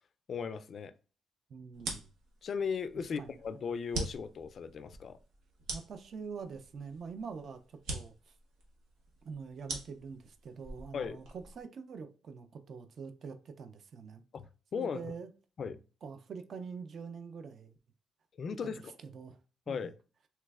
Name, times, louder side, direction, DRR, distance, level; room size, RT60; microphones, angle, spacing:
voice 1, 0.3-0.9 2.4-5.2 10.9-11.2 14.3-15.1 15.6-15.8 18.4-18.9 19.7-19.9, left 6 dB, 50° left, 0.3 m, -37 dB
voice 2, 1.5-2.1 3.2-3.4 5.7-8.3 9.2-14.2 14.7-15.3 16.0-17.8 18.5-19.4 19.7-19.9, right 5 dB, 55° right, 0.4 m, -45 dB
sound 1, 1.7-11.6, right 2 dB, 85° right, 0.9 m, -44 dB
3.3 x 3.0 x 2.3 m
cardioid pair, 100°, 0 cm